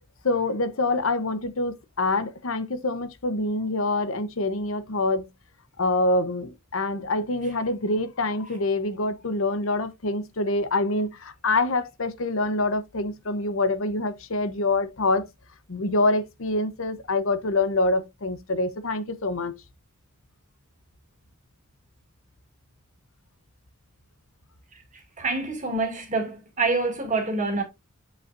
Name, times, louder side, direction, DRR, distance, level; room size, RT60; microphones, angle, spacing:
voice 1, 0.2-5.3 5.8-15.2 15.7-19.6, left 2 dB, 70° left, 0.9 m, -26 dB
voice 2, 25.2-27.6, right 3 dB, 35° right, 2.4 m, -26 dB
8.0 x 5.6 x 2.5 m
head